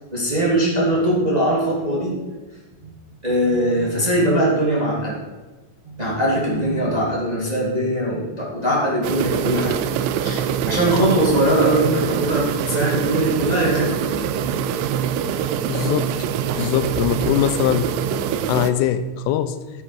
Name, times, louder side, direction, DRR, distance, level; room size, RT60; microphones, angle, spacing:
voice 1, 0.1-2.1 2.8-2.9 3.2-5.2 5.8-9.8 10.2-14.3, right 1 dB, 40° right, -6 dB, 0.5 m, -21 dB
sound 1, 9.0-18.7, right 8 dB, 85° right, 2.5 m, -24 dB
voice 2, 15.7-16.1 16.6-17.9 18.5-19.6, left 11 dB, 85° left, 11 dB, 3.0 m, -21 dB
12.0 x 7.4 x 4.6 m, 1.2 s
omnidirectional pair, 5.7 m